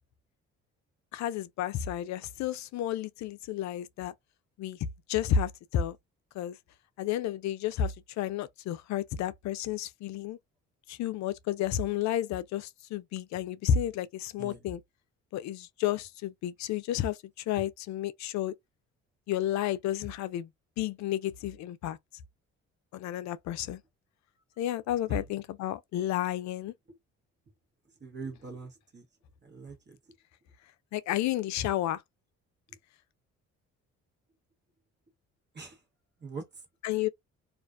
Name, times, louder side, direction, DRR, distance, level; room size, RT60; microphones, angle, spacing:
voice 1, 1.1-4.1 4.6-4.8 5.1-6.0 6.3-6.6 7.0-10.4 10.9-14.8 15.3-18.5 19.3-20.5 20.8-22.0 22.9-23.8 24.6-26.7 30.9-32.0 36.8-37.1, left 10 dB, 65° left, 0.4 m, -31 dB
voice 2, 28.0-29.0 29.5-29.9 35.6-35.7 36.2-36.4, right 4 dB, 35° right, 1.0 m, -42 dB
2.4 x 2.2 x 2.4 m
supercardioid pair, 65°, 31 cm